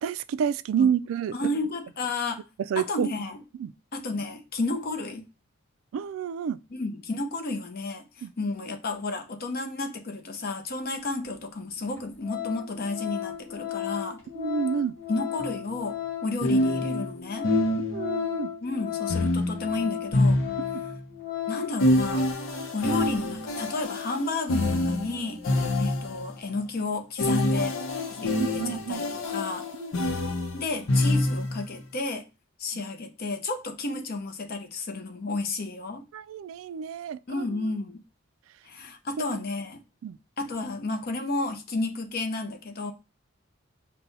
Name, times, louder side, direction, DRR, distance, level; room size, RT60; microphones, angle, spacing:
voice 1, 0.0-1.4 2.7-3.1 3.6-3.7 5.9-6.6 8.2-8.3 14.4-14.9 17.9-18.5 28.2-29.0 29.8-30.2 36.1-37.4 40.0-40.2, right 7 dB, 85° right, 0.3 m, -29 dB
voice 2, 1.3-2.4 2.8-3.4 3.9-5.3 6.7-14.2 15.1-16.0 16.2-17.5 18.6-20.4 21.5-22.3 22.7-27.8 28.1-29.7 30.5-32.2 32.6-36.0 37.3-38.0 38.6-39.8 40.4-42.9, left 3 dB, 50° left, 0.7 m, -32 dB
Organ, 11.2-11.3 11.8-12.0 12.2-21.8 22.1-22.3, left 12 dB, 10° left, 1.5 m, -34 dB
sound 1, 15.4-15.5 16.4-18.2 19.1-21.0 21.8-26.3 27.2-31.7, left 1 dB, 90° left, 0.8 m, -26 dB
5.3 x 2.2 x 4.0 m
head